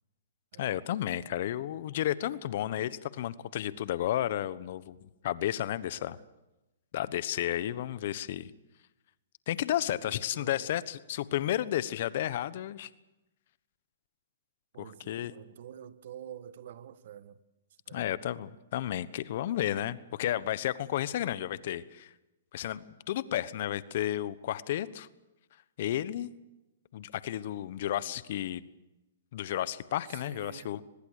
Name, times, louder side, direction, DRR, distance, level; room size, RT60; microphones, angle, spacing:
voice 1, 0.6-6.2 6.9-8.5 9.5-12.9 14.8-15.3 17.9-22.1 22.5-25.1 25.8-26.3 26.9-28.6 29.3-30.8, left 12 dB, 55° left, 1.1 m, -32 dB
voice 2, 10.0-10.7 14.7-17.4 17.9-18.1 30.1-30.8, right 10 dB, 60° right, 1.4 m, -48 dB
24.5 x 20.5 x 6.7 m
hypercardioid pair, 135°, 0 cm